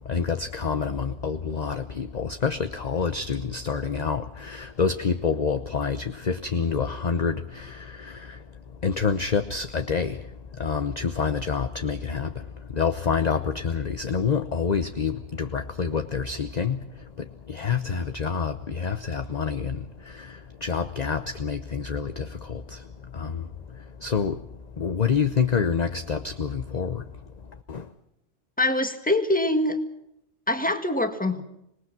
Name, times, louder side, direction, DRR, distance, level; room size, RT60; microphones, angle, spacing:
voice 1, 0.0-27.9, left 5 dB, 40° left, 9 dB, 0.9 m, -28 dB
voice 2, 28.6-29.8 30.5-31.4, left 1 dB, 5° left, 7 dB, 1.6 m, -24 dB
25.5 x 19.5 x 6.0 m, 0.80 s
omnidirectional pair, 1.3 m